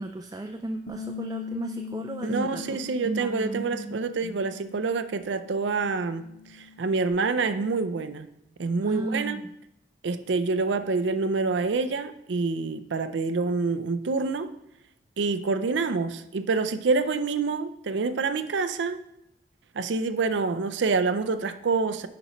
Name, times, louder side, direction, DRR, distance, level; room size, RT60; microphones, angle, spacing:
voice 1, 0.0-2.8 3.0-4.3 8.8-9.4, right 2 dB, 20° right, 3 dB, 0.3 m, -34 dB
Bass guitar, 0.9-7.1, left 5 dB, 90° left, 1.7 m, -41 dB
voice 2, 2.2-6.2 6.5-8.3 8.6-9.4 10.0-14.5 15.2-19.0 19.7-22.1, right 4 dB, 85° right, 12 dB, 0.5 m, -27 dB
10.5 x 5.2 x 3.0 m, 0.81 s
head